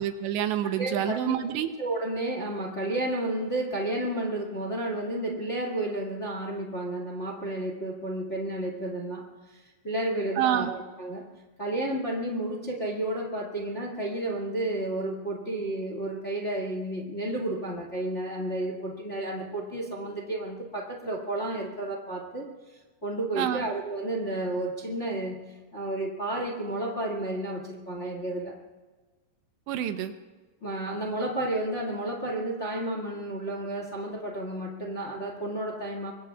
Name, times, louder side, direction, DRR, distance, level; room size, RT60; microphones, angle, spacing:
voice 1, 0.0-1.7 10.4-10.7 23.4-23.6 29.7-30.1, right 11 dB, 80° right, 8 dB, 3.0 m, -27 dB
voice 2, 0.8-1.4 1.8-11.3 11.6-28.5 30.6-36.1, right 1 dB, 35° left, 0 dB, 1.1 m, -32 dB
26.0 x 23.0 x 2.4 m, 1.3 s
omnidirectional pair, 5.2 m